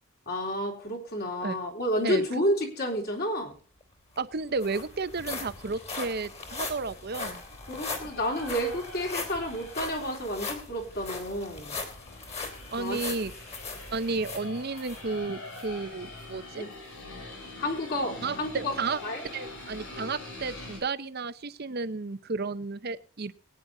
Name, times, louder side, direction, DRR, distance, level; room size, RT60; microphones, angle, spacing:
voice 1, 0.3-3.6 7.7-11.8 12.8-13.0 16.5-16.7 17.6-18.7 19.0-19.2, equal, 50° left, 1 dB, 3.7 m, -30 dB
voice 2, 2.0-2.4 4.2-7.4 12.7-13.3 13.9-16.6 18.2-19.0 19.3-23.3, right 4 dB, 50° right, 14 dB, 0.8 m, -32 dB
sound 1, 3.8-3.9 4.2-15.0 15.5-15.7 16.2-16.3, left 4 dB, 30° left, 3.0 m, -39 dB
sound 2, 7.0-20.8, left 2 dB, 90° left, 7.8 m, -44 dB
22.0 x 9.6 x 2.7 m, 0.39 s
head